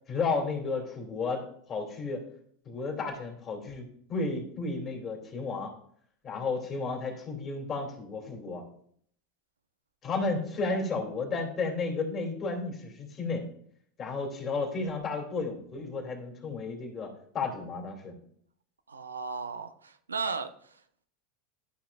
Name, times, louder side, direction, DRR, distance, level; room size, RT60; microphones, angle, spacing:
voice 1, 0.1-2.2 2.6-5.7 6.2-8.6 10.0-13.5 14.0-18.1, left 3 dB, 35° left, 1 dB, 2.6 m, -33 dB
voice 2, 18.9-20.8, right 4 dB, 90° right, 9 dB, 0.5 m, -35 dB
12.5 x 5.7 x 2.4 m, 0.62 s
hypercardioid pair, 85°, 0 cm